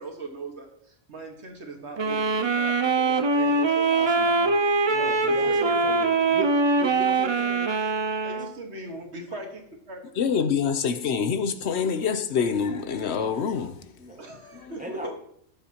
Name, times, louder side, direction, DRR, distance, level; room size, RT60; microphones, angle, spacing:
voice 1, 0.0-4.5 4.9-6.3 8.2-10.0 14.2-15.1, right 2 dB, 70° right, 1.9 m, -39 dB
sound 1, 2.0-8.5, right 3 dB, 45° right, 0.3 m, -23 dB
voice 2, 3.9-4.5 4.8-6.5 6.8-7.7 14.0-14.2 14.8-15.1, right 1 dB, 5° right, 1.5 m, -38 dB
voice 3, 10.2-14.0 14.5-14.7, left 6 dB, 70° left, 1.0 m, -26 dB
18.0 x 7.2 x 2.9 m
omnidirectional pair, 1.2 m